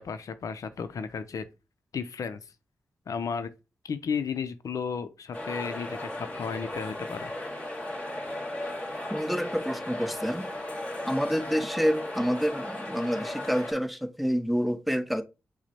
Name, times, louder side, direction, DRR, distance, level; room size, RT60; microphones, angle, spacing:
voice 1, 0.0-1.5 1.9-2.4 3.1-3.5 3.8-7.3, left 6 dB, 70° left, 0.5 m, -33 dB
sound 1, 5.3-13.7, left 1 dB, 20° left, 2.0 m, -36 dB
voice 2, 9.1-10.5 11.1-15.2, equal, ahead, 0.6 m, -28 dB
5.8 x 2.1 x 4.2 m
cardioid pair, 50°, 6 cm